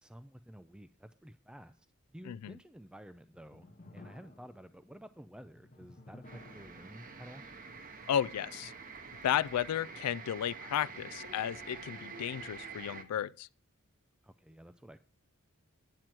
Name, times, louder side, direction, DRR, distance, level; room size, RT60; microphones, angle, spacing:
voice 1, 0.0-7.4 14.2-15.0, equal, 5° right, 0.3 m, -52 dB
sound 1, 3.2-10.2, left 2 dB, 35° left, 0.7 m, -58 dB
sound 2, 6.2-13.0, right 4 dB, 40° right, 0.9 m, -47 dB
voice 2, 8.1-8.7 9.2-13.5, left 10 dB, 85° left, 0.3 m, -33 dB
9.3 x 7.7 x 4.4 m
head